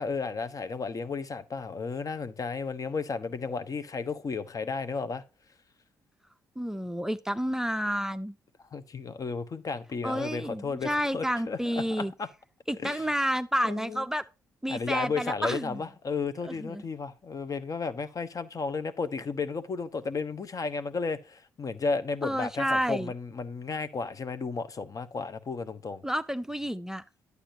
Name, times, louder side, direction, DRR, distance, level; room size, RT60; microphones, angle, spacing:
voice 1, 0.0-5.2 8.7-11.6 12.0-12.3 12.8-13.0 13.6-14.0 14.7-26.0, left 4 dB, 35° left, 1.1 m, -33 dB
voice 2, 6.6-8.3 10.0-12.1 12.7-14.2 14.6-15.8 16.4-16.8 22.2-23.1 26.0-27.0, equal, 5° right, 0.6 m, -30 dB
11.5 x 8.3 x 2.7 m
figure-of-eight pair, 40°, 9 cm